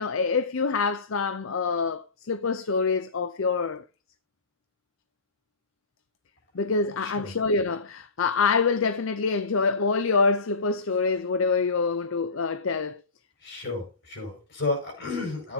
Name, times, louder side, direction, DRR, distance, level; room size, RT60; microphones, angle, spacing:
voice 1, 0.0-3.8 6.5-13.0, left 4 dB, 75° left, 0.6 m, -26 dB
voice 2, 13.4-15.5, left 3 dB, 60° left, 5.7 m, -32 dB
13.0 x 9.5 x 2.8 m
head